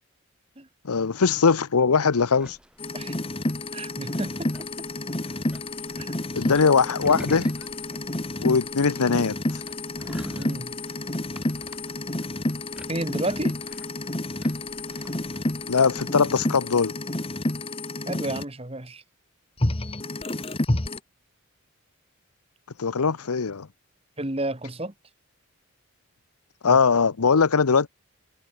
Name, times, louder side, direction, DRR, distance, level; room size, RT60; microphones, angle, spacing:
voice 1, 0.8-2.6 6.4-7.5 8.4-9.6 15.7-16.9 22.8-23.7 26.6-27.9, left 5 dB, 90° left, 0.8 m, -21 dB
sound 1, 2.1-16.1, equal, 5° right, 6.3 m, -47 dB
sound 2, 2.8-18.4 19.6-21.0, left 2 dB, 25° left, 1.1 m, -30 dB
voice 2, 3.7-4.9 6.0-6.1 10.3-10.8 12.9-13.5 18.0-19.0 24.2-24.9 26.7-26.8, right 1 dB, 25° right, 1.7 m, -32 dB
head